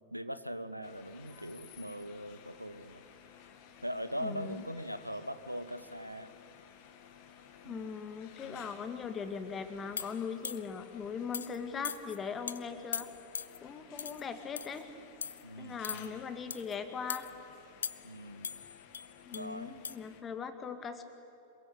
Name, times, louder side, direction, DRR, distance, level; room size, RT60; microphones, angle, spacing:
voice 1, 0.1-3.0 3.8-6.3 7.6-7.9 8.4-8.7 15.4-16.2 18.0-18.5 19.3-19.8, equal, 90° right, 12 dB, 1.2 m, -41 dB
sound 1, 0.8-20.2, left 8 dB, 45° left, 2.5 m, -56 dB
voice 2, 4.2-4.6 7.6-13.1 13.6-14.8 15.6-17.3 19.3-21.0, left 6 dB, 20° left, 8 dB, 2.2 m, -40 dB
sound 2, 10.0-10.8 11.3-11.6 11.8-12.2 12.5-12.6 12.9-13.6 14.0-14.2 14.6-14.8 15.2-15.4 15.8-16.1 16.5-16.7 17.1-17.3 17.8-18.2 18.4-19.5 19.8-20.0, left 6 dB, 70° left, 0.6 m, -40 dB
26.5 x 22.0 x 8.6 m, 2.6 s
figure-of-eight pair, 90°, 0 cm